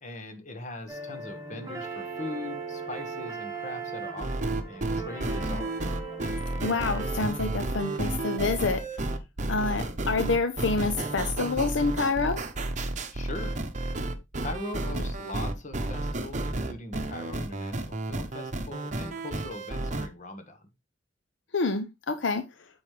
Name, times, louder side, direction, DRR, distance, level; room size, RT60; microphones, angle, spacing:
voice 1, 0.0-5.9 13.1-13.6 14.4-20.6, left 2 dB, 40° left, 1.5 m, -41 dB
sound 1, 0.9-7.1, right 4 dB, 20° right, 3.8 m, -38 dB
sound 2, 4.2-20.1, right 2 dB, 40° right, 0.9 m, -31 dB
voice 2, 6.6-9.0 9.5-12.4 21.5-22.4, left 3 dB, 65° left, 0.7 m, -27 dB
8.5 x 6.2 x 3.3 m
head